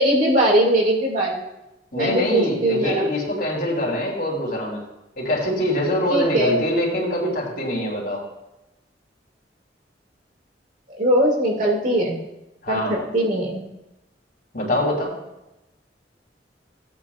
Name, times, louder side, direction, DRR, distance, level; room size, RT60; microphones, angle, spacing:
voice 1, 0.0-1.4 1.9-3.1 6.1-6.6 11.0-12.2 12.7-13.6, right 1 dB, 50° right, -1 dB, 2.3 m, -20 dB
voice 2, 1.9-4.8 5.2-8.2 12.6-13.0 14.5-15.1, left 1 dB, 55° left, -2 dB, 3.3 m, -24 dB
16.0 x 8.6 x 2.4 m, 0.93 s
head